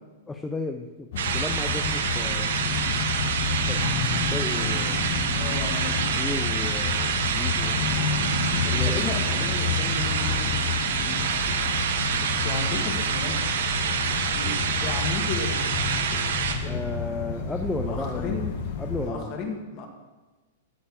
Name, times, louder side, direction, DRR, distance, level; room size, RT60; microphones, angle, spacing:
voice 1, 0.3-1.1 1.3-2.5 3.7-3.8 4.1-5.0 6.0-7.8 8.6-9.0 9.6-9.8 16.7-18.4 18.8-19.3, left 2 dB, 5° left, 4 dB, 0.4 m, -33 dB
sound 1, 1.1-19.1, left 5 dB, 40° left, 1.2 m, -30 dB
sound 2, 1.2-16.5, right 7 dB, 70° right, 1.2 m, -27 dB
voice 2, 4.5-6.0 8.6-11.4 12.2-13.4 13.7-16.9 17.8-18.5 19.0-19.9, left 4 dB, 25° left, 2 dB, 1.6 m, -35 dB
12.5 x 4.4 x 8.4 m, 1.2 s
supercardioid pair, 180°, 0 cm